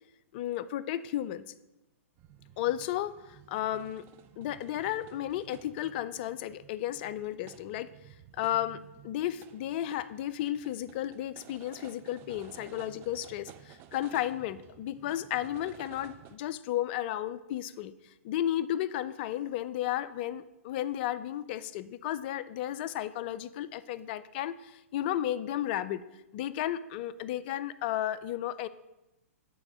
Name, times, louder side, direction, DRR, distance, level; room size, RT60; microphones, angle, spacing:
voice 1, 0.3-1.4 2.6-4.1 4.4-7.9 8.3-8.8 9.0-17.9 18.2-26.0 26.3-28.7, left 12 dB, 45° left, 15 dB, 0.4 m, -33 dB
sound 1, 2.2-16.4, right 10 dB, 30° right, 0.5 m, -53 dB
9.0 x 3.5 x 6.2 m, 0.97 s
hypercardioid pair, 125°, 8 cm